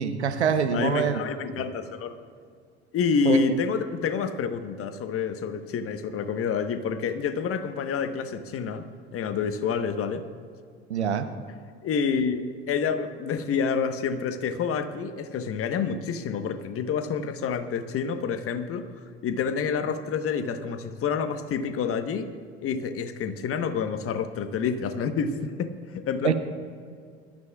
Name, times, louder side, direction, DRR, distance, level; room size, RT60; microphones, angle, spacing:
voice 1, 0.0-1.2 1.6-1.7 3.2-3.5 10.9-11.3 26.2-26.3, right 7 dB, 90° right, 10 dB, 0.9 m, -25 dB
voice 2, 0.7-2.1 2.9-8.8 9.1-10.2 11.8-18.9 19.2-22.3 22.6-26.3, left 6 dB, 45° left, 9 dB, 1.2 m, -28 dB
21.0 x 13.0 x 2.4 m, 2.2 s
hypercardioid pair, 70°, 33 cm